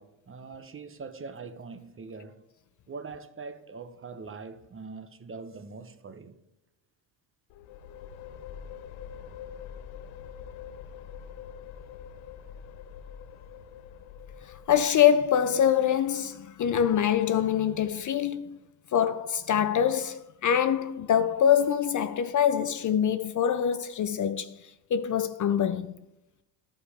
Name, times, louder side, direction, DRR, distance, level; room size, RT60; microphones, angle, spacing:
voice 1, 0.0-2.4 2.9-6.4, right 4 dB, 25° right, 0.8 m, -42 dB
sound 1, 7.5-15.3, left 8 dB, 75° left, 0.8 m, -44 dB
voice 2, 14.7-18.6 18.9-24.6 24.9-25.9, left 9 dB, 40° left, 0.5 m, -24 dB
11.0 x 5.5 x 4.9 m
cardioid pair, 90°, 48 cm